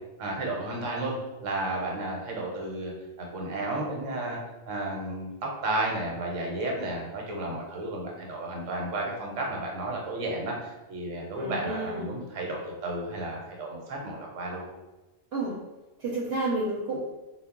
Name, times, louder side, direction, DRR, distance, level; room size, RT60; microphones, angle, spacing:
voice 1, 0.2-1.2 1.4-2.9 3.2-4.4 4.6-14.6, right 2 dB, 80° right, -1 dB, 1.1 m, -32 dB
voice 2, 11.4-12.1 15.3-15.5 16.0-17.0, right 2 dB, 60° right, -4 dB, 0.7 m, -30 dB
2.3 x 2.0 x 3.6 m, 1.1 s
omnidirectional pair, 1.3 m